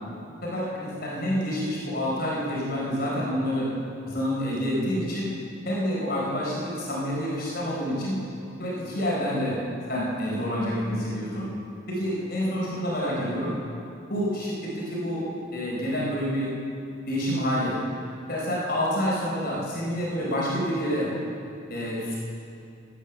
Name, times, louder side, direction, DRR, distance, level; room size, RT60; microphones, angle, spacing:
voice 1, 0.4-3.7 4.1-5.3 5.7-8.2 8.6-9.6 9.9-11.5 11.9-13.6 14.1-16.5 17.1-17.8 18.3-21.1 21.7-22.2, equal, 50° left, -5 dB, 4.1 m, -28 dB
16.0 x 10.0 x 6.8 m, 2.5 s
head